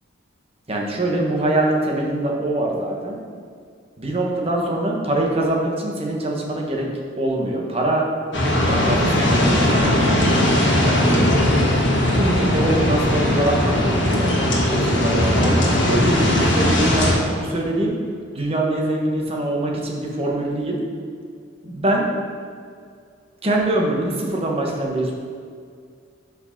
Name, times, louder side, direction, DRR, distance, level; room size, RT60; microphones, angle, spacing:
voice 1, 0.7-3.2 4.0-6.9 7.1-8.1 8.7-11.3 12.1-14.3 14.7-17.1 17.4-17.9 18.3-20.8 21.6-22.1 23.4-25.1, right 1 dB, 30° right, -1 dB, 1.1 m, -23 dB
sound 1, 8.3-17.2, left 1 dB, 65° left, 1.4 m, -19 dB
6.3 x 5.0 x 5.8 m, 2.1 s
head